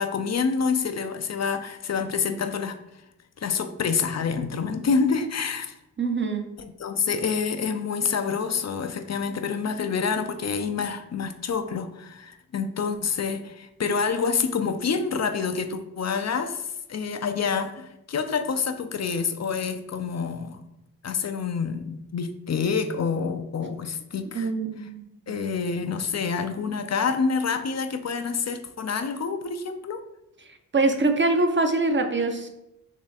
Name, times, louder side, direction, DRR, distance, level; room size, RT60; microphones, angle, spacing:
voice 1, 0.0-2.8 3.4-5.7 6.6-20.6 21.0-24.5 25.3-30.0, left 5 dB, 40° left, 8 dB, 0.6 m, -27 dB
voice 2, 6.0-6.5 24.3-25.4 30.7-32.5, right 3 dB, 25° right, 6 dB, 0.7 m, -24 dB
3.6 x 3.1 x 4.1 m, 0.86 s
supercardioid pair, 40°, 43 cm